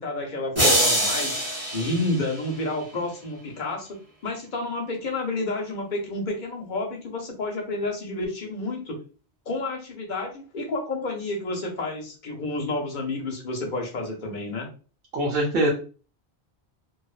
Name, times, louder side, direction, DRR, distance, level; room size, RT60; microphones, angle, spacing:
voice 1, 0.0-1.4 1.7-4.0 4.2-9.0 9.5-14.7, left 2 dB, 55° left, 1 dB, 0.7 m, -30 dB
sound 1, 0.6-2.9, equal, 15° right, 0.9 m, -24 dB
voice 2, 15.1-15.7, right 1 dB, 65° right, -4 dB, 0.8 m, -22 dB
2.6 x 2.0 x 2.3 m, 0.36 s
omnidirectional pair, 1.1 m